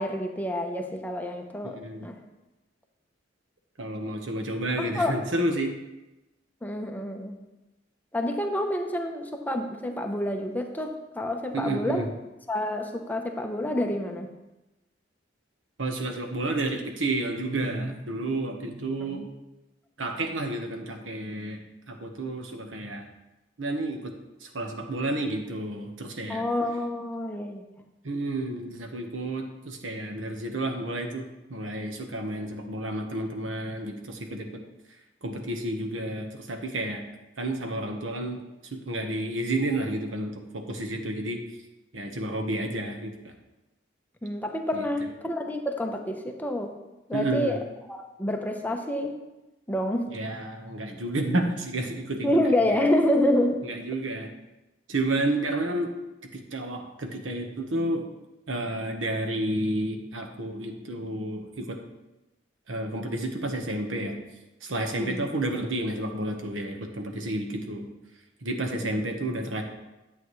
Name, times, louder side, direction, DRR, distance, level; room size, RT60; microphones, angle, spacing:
voice 1, 0.0-2.2 4.8-5.1 6.6-7.4 8.1-12.1 12.5-14.3 19.0-19.3 26.3-27.6 44.2-46.7 47.1-47.6 47.9-49.1 49.7-50.1 52.2-53.6 65.0-65.3 68.8-69.0, left 1 dB, 10° left, 3 dB, 0.8 m, -28 dB
voice 2, 1.6-2.1 3.8-5.7 11.5-12.1 15.8-19.3 20.0-21.6 21.9-23.1 23.6-24.1 24.4-26.4 28.0-34.5 35.2-37.0 37.4-38.4 38.7-41.4 41.9-43.3 44.7-44.8 47.1-47.6 50.1-52.3 53.6-54.3 54.9-55.9 56.3-58.1 58.5-61.8 62.7-64.2 64.6-67.9 68.4-69.6, right 1 dB, 90° right, 4 dB, 1.2 m, -30 dB
11.0 x 8.0 x 3.2 m, 1.0 s
head